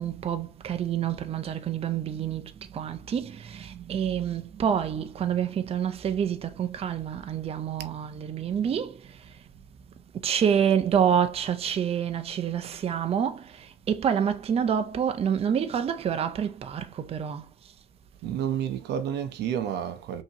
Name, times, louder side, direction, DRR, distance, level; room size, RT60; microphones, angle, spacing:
voice 1, 0.0-9.3 10.2-17.5, right 8 dB, 35° right, 0.5 m, -27 dB
voice 2, 18.2-20.2, right 9 dB, 80° right, 0.7 m, -30 dB
5.5 x 2.9 x 2.8 m
cardioid pair, 110°, 17 cm